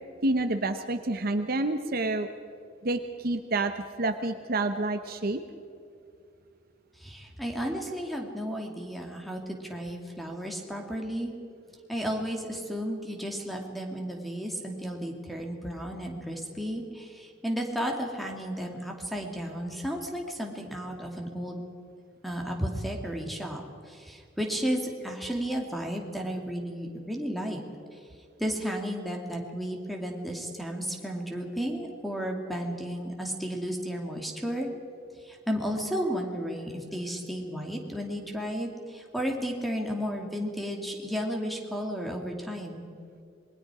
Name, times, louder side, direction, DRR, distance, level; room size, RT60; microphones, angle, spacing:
voice 1, 0.2-2.3 2.8-3.7 4.0-5.4, right 2 dB, 50° right, 8 dB, 0.9 m, -28 dB
voice 2, 7.0-11.3 11.9-21.6 22.2-27.6 28.4-34.7 35.2-42.8, equal, ahead, 1 dB, 2.4 m, -33 dB
27.0 x 21.0 x 4.9 m, 2.4 s
head